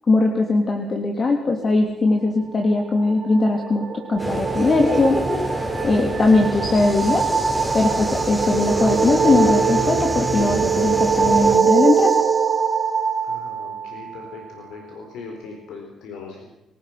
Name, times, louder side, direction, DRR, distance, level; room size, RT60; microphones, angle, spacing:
voice 1, 0.1-3.8 4.1-5.2 5.8-7.2 7.7-12.2, left 3 dB, 40° left, 3 dB, 3.1 m, -20 dB
sound 1, 3.0-14.4, right 6 dB, 40° right, 3.9 m, -23 dB
sound 2, 4.2-11.6, equal, 10° left, 5.4 m, -27 dB
sound 3, 6.2-13.0, right 2 dB, 10° right, 2.7 m, -36 dB
voice 2, 13.2-16.5, left 4 dB, 85° left, 2 dB, 4.4 m, -39 dB
28.0 x 18.5 x 6.0 m, 0.93 s
cardioid pair, 90°, 0 cm